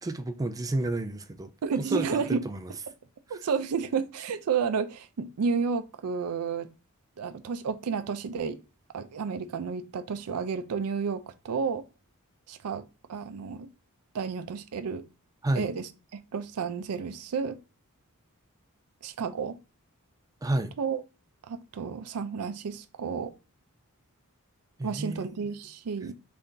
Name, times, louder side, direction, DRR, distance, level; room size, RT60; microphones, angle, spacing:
voice 1, 0.0-1.5 1.8-2.7 15.4-15.7 20.4-20.7 24.8-25.4, right 2 dB, 15° right, 0.3 m, -30 dB
voice 2, 1.6-2.4 3.3-6.7 7.2-8.6 8.9-11.8 12.5-12.8 13.1-13.7 14.1-15.0 15.6-17.6 19.0-19.6 20.8-21.0 21.4-23.3 24.8-26.1, right 5 dB, 80° right, 0.4 m, -31 dB
3.4 x 2.6 x 3.7 m
head